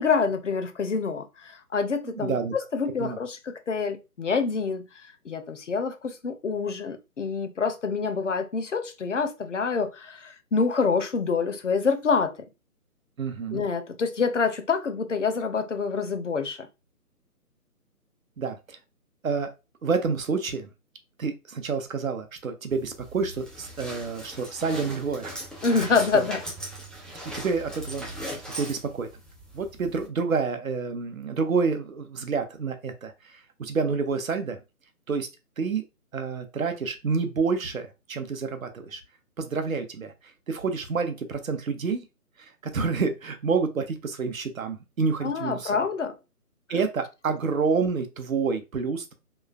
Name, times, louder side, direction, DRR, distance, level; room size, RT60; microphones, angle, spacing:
voice 1, 0.0-2.4 2.7-12.4 13.5-16.7 25.6-26.4 45.2-46.2, left 5 dB, 55° left, 0.5 m, -27 dB
voice 2, 2.0-2.5 3.0-3.2 13.2-13.6 18.4-18.8 19.2-19.5 19.8-20.7 21.2-25.4 25.7-26.2 27.3-28.1 28.5-29.1 29.5-34.6 35.1-35.3 35.6-35.8 36.1-39.0 39.4-40.1 40.5-42.1 42.6-45.7 46.7-49.1, right 5 dB, 60° right, 0.7 m, -28 dB
sound 1, 22.7-30.1, right 1 dB, ahead, 0.4 m, -39 dB
3.0 x 2.2 x 2.3 m
hypercardioid pair, 175°, 46 cm